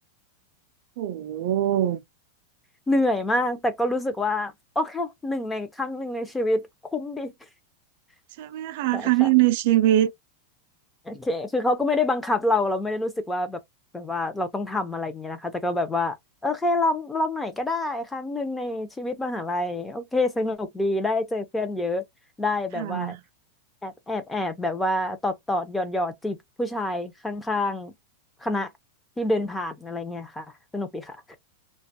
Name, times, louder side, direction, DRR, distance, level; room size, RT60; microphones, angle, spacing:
voice 1, 1.0-2.0 8.4-10.1 22.7-23.2, right 13 dB, 60° right, 0.3 m, -22 dB
voice 2, 2.9-6.7 6.9-7.3 8.9-9.3 11.1-13.6 13.9-16.2 16.4-22.0 22.4-23.2 23.8-27.9 28.4-28.7 29.2-30.5 30.7-31.2, left 2 dB, 10° left, 0.5 m, -27 dB
2.4 x 2.2 x 2.6 m
supercardioid pair, 145°, 0 cm